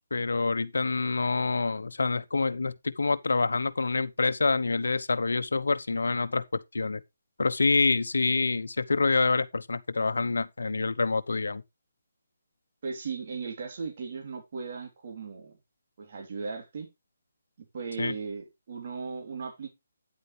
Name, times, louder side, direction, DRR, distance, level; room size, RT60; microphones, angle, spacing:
voice 1, 0.1-7.0 7.4-11.6 18.0-18.1, left 3 dB, 80° left, 1.0 m, -27 dB
voice 2, 12.8-15.6 16.0-16.9 17.7-19.7, right 5 dB, 50° right, 3.2 m, -37 dB
9.7 x 8.4 x 3.3 m
figure-of-eight pair, 155°, 0 cm